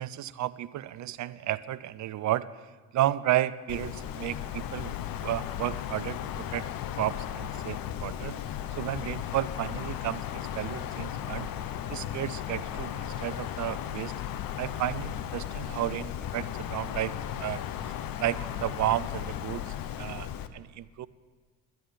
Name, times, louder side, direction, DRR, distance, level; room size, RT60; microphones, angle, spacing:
voice 1, 0.0-2.5 2.9-4.9 5.2-6.6 7.0-8.4 8.7-11.5 11.9-14.1 14.6-17.1 17.4-17.9 18.2-21.1, right 14 dB, 40° right, 16 dB, 0.5 m, -32 dB
Wind, 3.7-20.5, left 10 dB, 50° left, 0.8 m, -36 dB
10.5 x 10.5 x 6.9 m, 1.4 s
hypercardioid pair, 70°, 47 cm